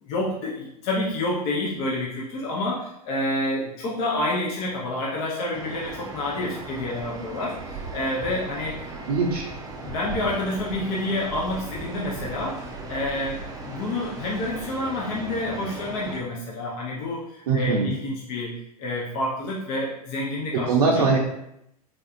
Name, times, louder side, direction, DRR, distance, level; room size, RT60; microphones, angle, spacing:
voice 1, 0.0-8.7 9.8-21.1, left 1 dB, 50° left, -4 dB, 0.8 m, -28 dB
sound 1, 5.5-16.2, right 2 dB, 20° right, 0.5 m, -37 dB
voice 2, 9.1-9.5 17.5-18.0 20.5-21.2, right 4 dB, 80° right, -3 dB, 0.5 m, -21 dB
3.5 x 2.5 x 2.5 m, 0.81 s
hypercardioid pair, 100°, 20 cm